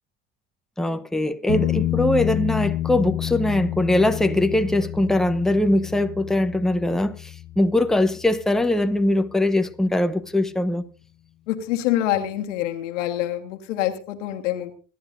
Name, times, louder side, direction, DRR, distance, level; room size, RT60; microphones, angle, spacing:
voice 1, 0.8-10.8, left 1 dB, ahead, 0.8 m, -21 dB
sound 1, 1.5-9.1 12.1-12.2, left 14 dB, 55° left, 0.9 m, -29 dB
voice 2, 11.5-14.7, left 13 dB, 85° left, 1.6 m, -26 dB
26.0 x 10.5 x 2.6 m
hypercardioid pair, 70°, 36 cm